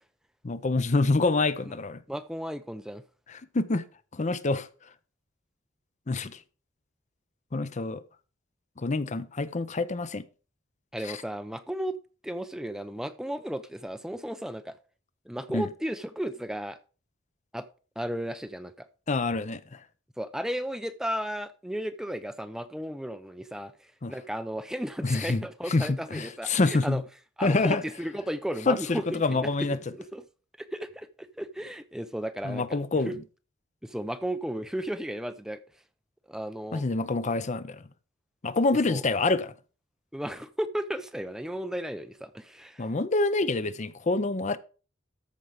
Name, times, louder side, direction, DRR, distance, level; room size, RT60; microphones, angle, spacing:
voice 1, 0.4-2.0 3.3-3.8 4.1-4.7 6.1-6.4 7.5-8.0 8.8-10.3 11.0-11.2 15.5-15.7 19.1-19.8 24.0-24.1 25.0-27.0 27.4-27.8 28.7-29.8 32.4-33.2 36.7-37.8 38.4-39.5 42.8-44.6, left 3 dB, 40° left, 0.6 m, -27 dB
voice 2, 2.1-3.0 10.9-12.0 12.2-14.8 15.3-16.8 17.5-17.7 18.0-18.9 20.2-23.7 24.1-27.0 27.4-29.5 30.1-30.2 30.6-32.6 33.1-33.2 33.8-35.6 36.3-36.8 38.9-39.0 40.1-42.9, equal, 5° right, 0.5 m, -34 dB
13.5 x 5.3 x 4.9 m
head